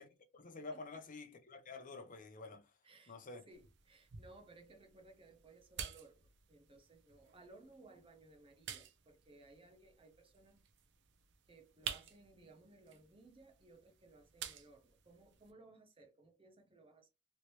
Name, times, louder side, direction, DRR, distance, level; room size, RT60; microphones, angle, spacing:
voice 1, 0.0-2.7 3.1-3.5, left 3 dB, 40° left, 0.7 m, -50 dB
voice 2, 2.8-3.2 3.5-10.6 11.5-17.1, right 2 dB, 25° right, 0.8 m, -61 dB
sound 1, 3.5-15.5, right 8 dB, 60° right, 0.5 m, -52 dB
3.1 x 2.8 x 3.0 m
head